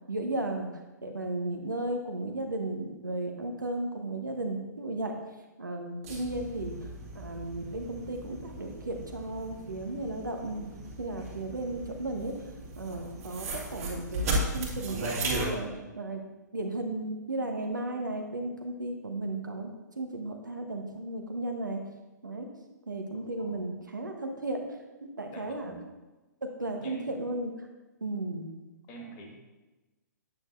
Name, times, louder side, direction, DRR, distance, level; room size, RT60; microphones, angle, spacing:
voice 1, 0.1-5.2 5.6-10.6 11.0-12.3 12.8-16.2 16.5-19.7 20.0-21.8 22.2-22.5 22.9-24.6 25.0-25.7 26.4-27.7 28.0-28.5, right 2 dB, 80° right, 3 dB, 1.0 m, -35 dB
sound 1, 6.0-15.5, right 1 dB, 50° right, 2.0 m, -36 dB
voice 2, 23.1-23.7 25.3-25.9 26.8-27.1 28.9-29.4, right 1 dB, 30° left, 1 dB, 1.5 m, -47 dB
8.9 x 6.4 x 2.6 m, 1.1 s
figure-of-eight pair, 120°, 10 cm